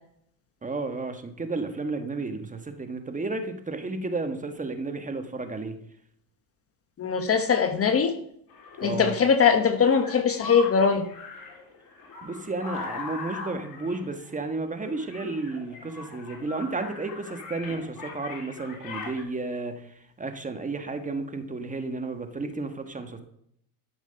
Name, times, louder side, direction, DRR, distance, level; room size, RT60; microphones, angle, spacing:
voice 1, 0.6-5.8 8.8-9.2 12.2-23.2, right 3 dB, 15° right, 7 dB, 1.4 m, -32 dB
voice 2, 7.0-8.1 8.8-11.1, left 6 dB, 30° left, 8 dB, 1.1 m, -21 dB
sound 1, 8.5-19.2, left 3 dB, 50° left, 3.1 m, -40 dB
12.5 x 5.9 x 5.7 m, 0.71 s
supercardioid pair, 100°, 44 cm